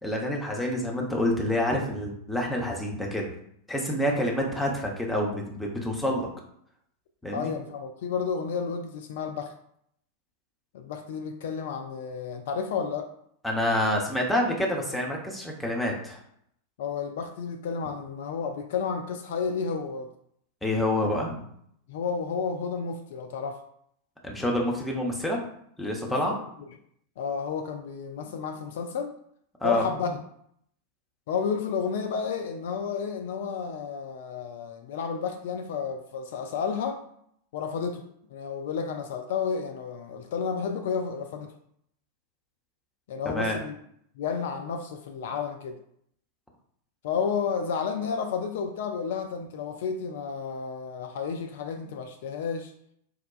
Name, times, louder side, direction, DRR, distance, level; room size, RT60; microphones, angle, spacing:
voice 1, 0.0-3.4 3.7-6.3 7.2-7.5 13.4-16.2 20.6-21.4 24.2-25.4 25.8-26.3 29.6-29.9 43.3-43.6, left 1 dB, 5° left, -1 dB, 0.7 m, -27 dB
voice 2, 7.3-9.5 10.7-13.1 16.8-20.1 21.9-23.6 26.1-26.4 27.2-29.2 29.6-30.2 31.3-37.0 37.5-38.0 38.3-41.5 43.1-43.7 44.2-45.8 47.0-52.7, left 6 dB, 55° left, 6 dB, 0.3 m, -31 dB
4.6 x 2.2 x 2.3 m, 0.70 s
figure-of-eight pair, 90°, 0 cm